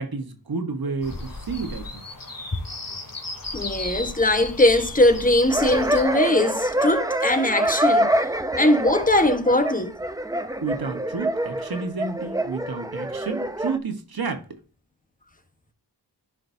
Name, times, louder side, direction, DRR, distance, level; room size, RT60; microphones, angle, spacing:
voice 1, 0.0-2.0 10.6-14.5, right 4 dB, 55° right, 1.3 m, -30 dB
sound 1, 1.0-6.0, left 2 dB, 50° left, 2.2 m, -35 dB
voice 2, 3.5-8.1 8.6-9.9, left 1 dB, 20° left, 1.2 m, -20 dB
sound 2, 5.5-13.8, right 1 dB, 10° right, 0.7 m, -26 dB
10.5 x 5.0 x 2.7 m
cardioid pair, 40°, 43 cm